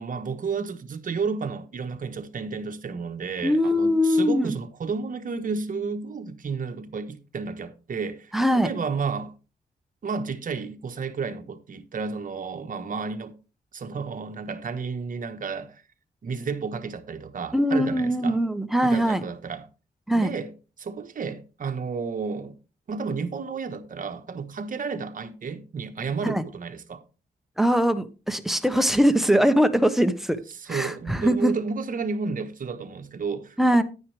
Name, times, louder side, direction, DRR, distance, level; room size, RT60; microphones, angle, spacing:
voice 1, 0.0-9.3 10.0-13.4 13.7-15.8 16.2-18.4 18.8-19.7 20.1-20.5 20.8-22.6 22.9-27.0 30.5-33.8, right 5 dB, 55° right, 1.3 m, -32 dB
voice 2, 3.4-4.6 8.3-8.7 17.5-19.2 20.1-20.3 26.2-26.4 27.6-30.4 30.7-31.5 33.6-33.8, equal, ahead, 1.0 m, -21 dB
10.5 x 9.5 x 3.3 m
wide cardioid pair, 110°, 17 cm